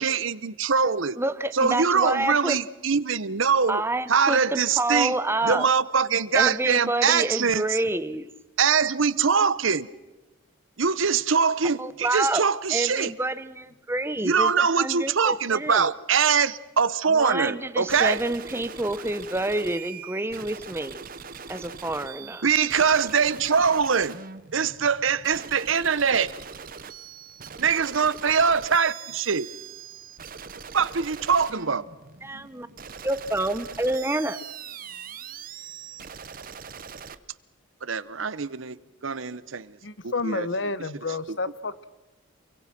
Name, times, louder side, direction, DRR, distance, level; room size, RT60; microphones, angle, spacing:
voice 1, 0.0-1.2 1.5-3.8 4.1-5.1 5.5-7.6 8.6-9.9 10.8-13.1 14.2-18.2 22.4-24.2 24.5-26.3 27.6-29.5 30.7-31.8 37.8-38.8 39.0-39.7 40.0-40.5 41.3-41.4, right 6 dB, 70° right, 0.9 m, -23 dB
voice 2, 1.2-2.6 3.7-5.7 6.3-8.3 11.8-12.4 12.7-15.9 17.1-21.0 21.5-22.4 32.2-32.7 33.0-34.4, right 2 dB, 10° right, 0.8 m, -28 dB
sound 1, 17.9-37.2, right 6 dB, 45° right, 0.9 m, -42 dB
voice 3, 39.8-41.9, left 3 dB, 60° left, 1.0 m, -30 dB
28.5 x 23.0 x 6.0 m
head